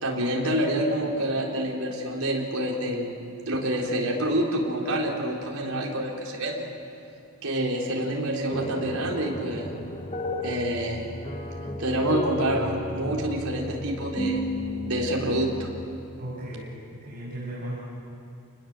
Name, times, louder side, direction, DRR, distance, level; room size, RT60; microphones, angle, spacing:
voice 1, 0.0-3.2 3.5-6.7 7.4-9.7 10.4-11.1 11.8-14.5 14.9-15.7, right 1 dB, 80° right, -2 dB, 4.1 m, -27 dB
sound 1, 8.5-15.9, left 1 dB, 25° left, 1.2 m, -33 dB
voice 2, 16.2-16.7 17.0-17.8, right 1 dB, 40° right, -7 dB, 6.8 m, -35 dB
29.0 x 20.5 x 7.6 m, 2.7 s
head